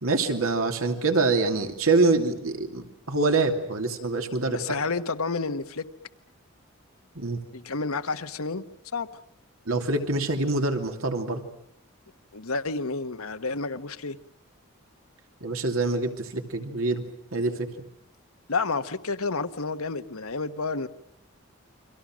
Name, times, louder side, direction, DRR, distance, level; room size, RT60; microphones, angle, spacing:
voice 1, 0.0-4.6 7.2-7.4 9.7-11.4 15.4-17.0 17.3-17.7, right 3 dB, 80° right, 5 dB, 2.9 m, -25 dB
voice 2, 4.5-5.8 7.5-8.6 8.9-9.1 12.3-14.2 18.5-20.9, left 4 dB, 85° left, 9 dB, 1.2 m, -30 dB
29.5 x 24.5 x 6.3 m, 0.72 s
head